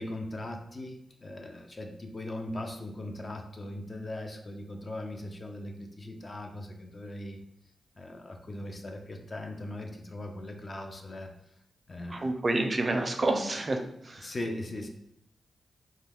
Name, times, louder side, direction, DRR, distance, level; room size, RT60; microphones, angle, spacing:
voice 1, 0.0-7.4 7.9-11.3 11.9-12.4 14.2-14.9, left 1 dB, 45° left, 3 dB, 0.4 m, -39 dB
voice 2, 12.1-14.3, right 2 dB, 40° right, 4 dB, 0.4 m, -29 dB
2.3 x 2.3 x 3.4 m, 0.75 s
cardioid pair, 60°, 0 cm